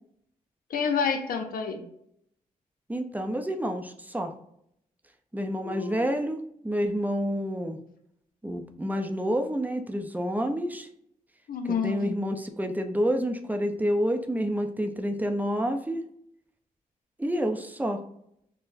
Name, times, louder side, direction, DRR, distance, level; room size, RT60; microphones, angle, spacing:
voice 1, 0.7-1.8 5.6-6.1 11.5-12.1, left 6 dB, 75° left, 5 dB, 0.6 m, -29 dB
voice 2, 2.9-4.3 5.3-7.8 8.4-10.9 11.6-16.0 17.2-18.0, equal, 10° right, 5 dB, 0.5 m, -28 dB
4.4 x 2.1 x 2.6 m, 0.73 s
supercardioid pair, 55°, 15 cm